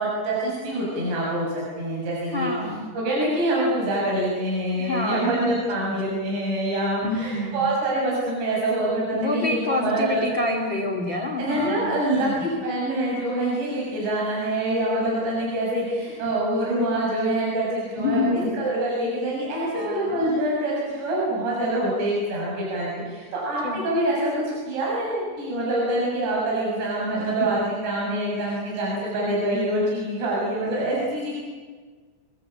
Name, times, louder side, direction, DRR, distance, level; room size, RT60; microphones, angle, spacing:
voice 1, 0.0-2.5 2.9-10.2 11.4-24.3 24.7-31.4, right 1 dB, 55° right, -4 dB, 8.6 m, -25 dB
voice 2, 2.3-2.8 4.8-6.2 7.0-7.7 9.1-12.4 18.0-18.6 19.7-20.4 23.6-23.8 27.4-27.5, left 2 dB, 40° left, 4 dB, 1.7 m, -28 dB
26.0 x 21.5 x 8.7 m, 1.4 s
omnidirectional pair, 5.8 m